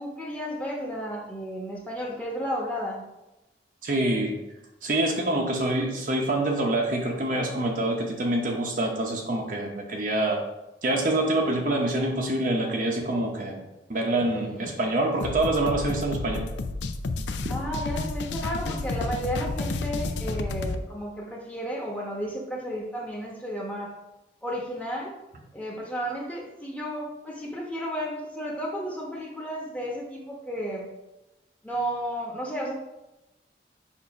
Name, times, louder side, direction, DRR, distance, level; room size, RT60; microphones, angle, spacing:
voice 1, 0.0-3.0 14.3-14.6 17.5-24.0 24.4-25.1 25.5-30.9 31.6-32.7, equal, 10° left, -2 dB, 1.0 m, -33 dB
voice 2, 3.8-4.4 4.8-10.4 10.8-13.6 13.9-16.5, right 1 dB, 50° right, 1 dB, 0.8 m, -26 dB
sound 1, 15.2-20.8, left 3 dB, 80° left, 0.4 m, -31 dB
7.1 x 2.7 x 5.2 m, 0.99 s
head